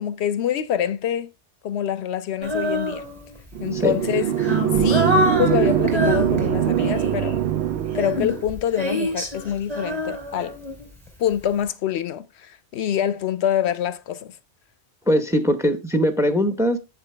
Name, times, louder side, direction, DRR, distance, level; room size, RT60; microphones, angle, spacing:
voice 1, 0.0-1.3 1.6-3.0 3.6-7.4 7.9-10.6 11.2-14.4, left 10 dB, 70° left, 0.8 m, -26 dB
Female singing, 2.4-3.5 4.1-7.3 7.9-11.1, left 1 dB, 25° right, 2.9 m, -26 dB
sound 1, 3.5-8.5, right 10 dB, 70° right, 0.9 m, -22 dB
voice 2, 15.1-16.8, equal, 5° right, 0.7 m, -21 dB
8.2 x 7.0 x 3.2 m
omnidirectional pair, 1.2 m